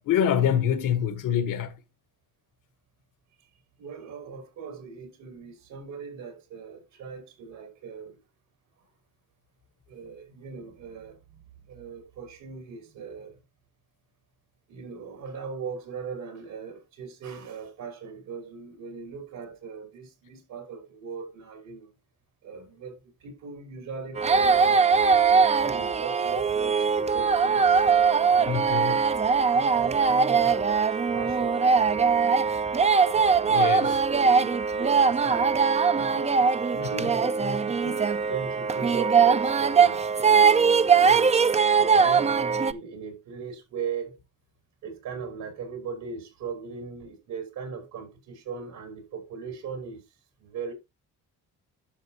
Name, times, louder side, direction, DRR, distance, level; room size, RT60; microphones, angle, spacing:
voice 1, 0.0-1.8 28.5-29.0 33.5-33.9, left 9 dB, 80° left, 1.5 m, -25 dB
voice 2, 3.8-8.2 9.9-11.2 11.7-13.4 14.7-21.9 22.4-24.8 25.6-32.2 32.9-35.5 36.0-41.3 41.8-44.2 44.8-50.1 50.4-50.7, right 5 dB, 85° right, 5.5 m, -39 dB
sound 1, 24.2-42.7, right 5 dB, 20° right, 0.4 m, -21 dB
12.0 x 6.6 x 2.9 m
cardioid pair, 100°, 32 cm